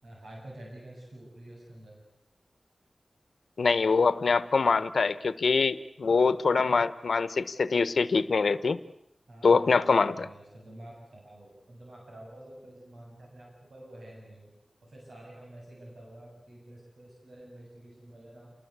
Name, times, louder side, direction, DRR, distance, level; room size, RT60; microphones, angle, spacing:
voice 1, 0.0-2.0 9.3-14.5 14.8-18.5, right 1 dB, 85° right, -2 dB, 7.8 m, -48 dB
voice 2, 3.6-8.8 9.4-10.3, left 4 dB, 85° left, 14 dB, 1.1 m, -24 dB
29.0 x 20.5 x 8.3 m, 0.82 s
wide cardioid pair, 100°, 0 cm